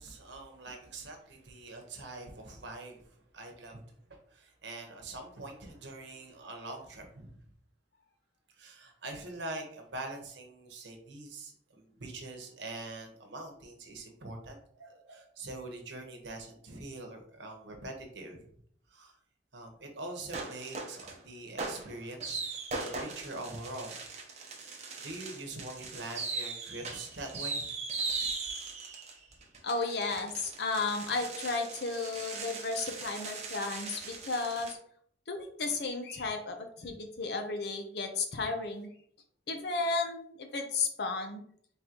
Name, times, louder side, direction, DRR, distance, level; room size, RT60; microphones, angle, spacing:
voice 1, 0.0-3.8 4.1-7.4 8.5-18.5 18.9-19.2 19.5-22.4 22.8-24.0 25.0-27.7 28.2-28.3, right 2 dB, 70° right, 3 dB, 1.0 m, -44 dB
sound 1, 20.3-21.2 21.6-34.7, right 4 dB, 35° right, 0.8 m, -39 dB
voice 2, 29.6-34.8 35.3-38.9 39.5-41.4, left 3 dB, 60° left, 5 dB, 0.7 m, -33 dB
4.0 x 3.8 x 2.9 m, 0.63 s
head